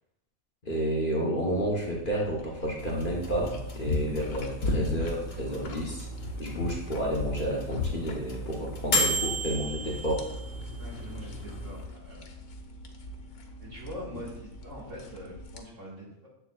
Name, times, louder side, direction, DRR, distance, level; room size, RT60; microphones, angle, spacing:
voice 1, 0.6-6.1 6.4-10.3, equal, 40° left, -3 dB, 1.1 m, -31 dB
sound 1, 1.5-15.6, left 2 dB, 90° left, 1.3 m, -38 dB
sound 2, 2.8-11.8, equal, 65° left, 2.0 m, -35 dB
voice 2, 10.8-12.3 13.6-16.3, equal, 60° right, -5 dB, 2.2 m, -43 dB
7.9 x 6.9 x 2.4 m, 0.87 s
omnidirectional pair, 1.5 m